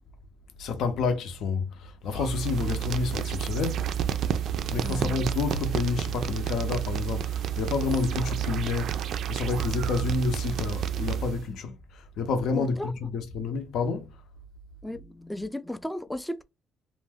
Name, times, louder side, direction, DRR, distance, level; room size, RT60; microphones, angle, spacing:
voice 1, 0.6-3.9 4.7-14.1, left 4 dB, 75° left, 0.6 m, -29 dB
sound 1, 2.1-11.5, right 10 dB, 70° right, 0.3 m, -30 dB
voice 2, 12.5-12.9 14.8-16.4, left 1 dB, 5° left, 0.3 m, -35 dB
2.6 x 2.1 x 3.4 m
cardioid pair, 95°, 0 cm